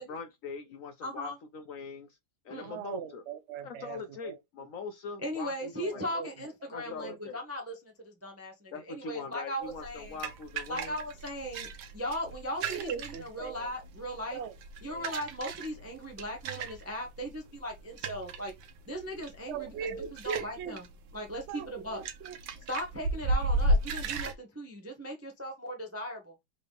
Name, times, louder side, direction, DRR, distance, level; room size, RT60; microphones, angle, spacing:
voice 1, 0.0-2.2 2.4-3.2 3.6-6.1 6.7-7.4 8.7-11.0, left 5 dB, 70° left, 0.8 m, -42 dB
voice 2, 1.0-1.4 2.5-2.7 5.2-10.2 10.7-14.4 14.8-18.5 18.9-20.8 21.1-22.0 22.7-26.3, equal, 15° right, 0.5 m, -38 dB
voice 3, 2.6-4.4 5.9-6.3 6.8-7.2 12.6-13.7 14.3-14.5 14.9-15.1 19.5-20.8 21.5-22.6, right 7 dB, 65° right, 0.7 m, -40 dB
sound 1, 9.6-24.3, right 1 dB, 90° right, 1.4 m, -35 dB
3.8 x 3.4 x 3.8 m
omnidirectional pair, 1.8 m